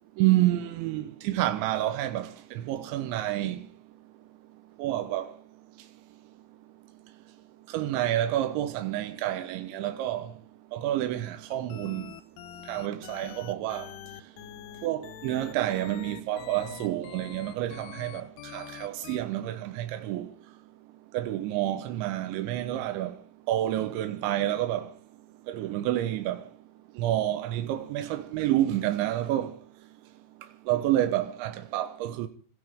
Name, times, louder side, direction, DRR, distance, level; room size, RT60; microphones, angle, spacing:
voice 1, 0.2-3.6 4.8-5.3 7.7-10.3 10.7-12.1 12.7-13.9 14.8-20.3 21.1-23.2 23.5-24.9 25.5-26.4 27.0-29.6 30.7-32.3, right 13 dB, 90° right, 3.3 m, -29 dB
sound 1, 11.5-19.2, left 11 dB, 75° left, 2.9 m, -45 dB
25.5 x 15.5 x 3.6 m
omnidirectional pair, 5.2 m